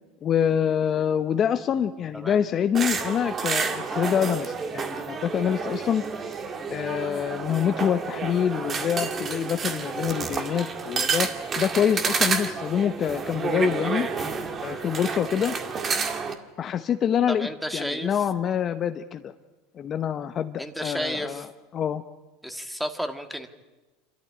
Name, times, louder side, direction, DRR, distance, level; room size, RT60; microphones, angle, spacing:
voice 1, 0.2-6.0 6.7-11.3 11.6-14.1 14.6-15.5 16.6-17.5 17.7-19.3 19.7-21.5 21.7-22.0, left 8 dB, 35° left, 9 dB, 0.8 m, -26 dB
sound 1, 2.7-16.3, right 5 dB, 30° right, 1.9 m, -29 dB
voice 2, 17.3-18.2 20.6-21.5 22.4-23.5, equal, ahead, 7 dB, 1.8 m, -32 dB
26.5 x 13.5 x 9.7 m, 1.2 s
supercardioid pair, 120°, 0 cm